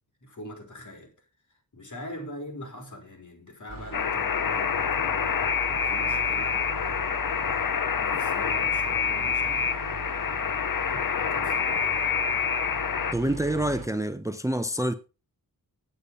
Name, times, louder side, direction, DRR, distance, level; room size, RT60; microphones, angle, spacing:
voice 1, 0.2-1.1 1.5-5.5 5.8-7.0 7.3-9.7 10.7-12.0, equal, 55° left, 4.3 m, -43 dB
sound 1, 3.7-13.9, right 4 dB, 65° right, 1.4 m, -41 dB
Alarm, 3.9-13.1, left 6 dB, 70° left, 0.9 m, -27 dB
voice 2, 13.1-14.9, right 1 dB, 10° right, 0.7 m, -27 dB
9.9 x 8.5 x 5.4 m
wide cardioid pair, 105°, 35 cm